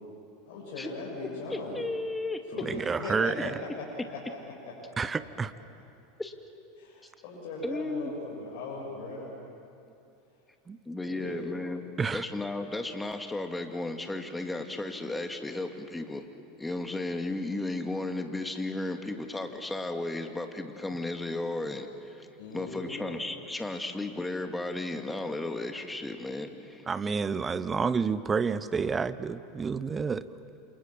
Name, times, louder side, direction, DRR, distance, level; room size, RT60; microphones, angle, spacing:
voice 1, 0.4-1.8 2.5-3.3 3.8-3.9 4.1-4.2 6.8-9.3 11.0-11.6 22.4-23.1, left 3 dB, 60° left, -5 dB, 7.3 m, -39 dB
voice 2, 1.5-2.4 6.2-6.3 7.6-8.1 10.9-11.8 12.1-16.3 16.6-22.3 22.5-26.9, left 2 dB, 10° left, 5 dB, 2.3 m, -34 dB
voice 3, 2.6-3.6 5.0-5.5 10.7-10.8 12.0-12.2 26.9-30.2, right 5 dB, 20° right, 15 dB, 1.0 m, -29 dB
28.0 x 28.0 x 7.4 m, 2.6 s
hypercardioid pair, 90°, 0 cm